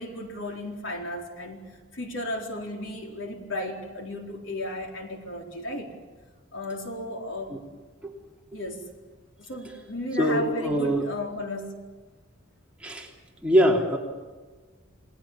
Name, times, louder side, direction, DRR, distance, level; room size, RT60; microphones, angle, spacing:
voice 1, 0.0-5.9 6.5-7.5 8.5-8.9 9.4-11.7, left 1 dB, 70° left, 2 dB, 4.2 m, -34 dB
voice 2, 10.2-11.0 12.8-13.1 13.4-14.0, equal, 5° right, -1 dB, 3.2 m, -23 dB
29.0 x 20.0 x 7.4 m, 1.3 s
head